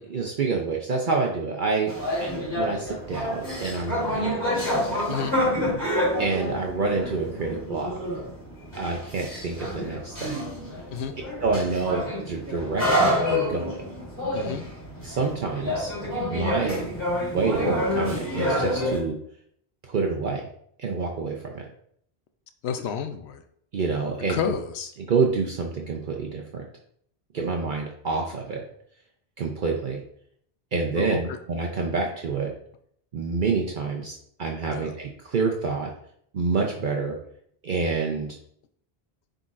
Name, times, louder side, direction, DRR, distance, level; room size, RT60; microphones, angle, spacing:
voice 1, 0.0-1.9 2.2-4.4 4.7-5.0 6.2-7.9 8.8-10.5 11.4-13.7 15.0-15.9 16.3-16.9 17.3-19.2 19.9-20.4 20.8-21.6 23.7-24.4 25.0-26.6 27.3-28.6 29.4-30.0 30.7-32.5 33.1-35.9 36.3-37.1 37.6-38.4, right 4 dB, 55° right, 0 dB, 0.8 m, -27 dB
sound 1, 1.9-19.0, left 1 dB, 25° left, 2.8 m, -28 dB
voice 2, 22.6-23.4 24.3-24.9 31.0-31.4 34.7-34.9, left 7 dB, 85° left, 7 dB, 0.9 m, -30 dB
9.8 x 3.9 x 2.5 m, 0.67 s
omnidirectional pair, 1.1 m